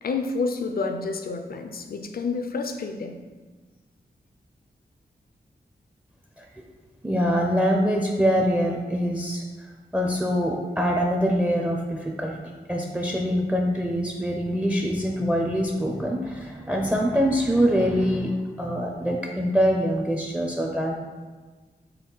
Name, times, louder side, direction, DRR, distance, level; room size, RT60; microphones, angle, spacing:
voice 1, 0.0-3.1, left 4 dB, 60° left, 5 dB, 0.4 m, -29 dB
voice 2, 7.0-9.4 9.9-12.4 12.7-20.9, equal, 10° right, 1 dB, 0.4 m, -24 dB
5.3 x 2.2 x 3.8 m, 1.3 s
wide cardioid pair, 80°, 17 cm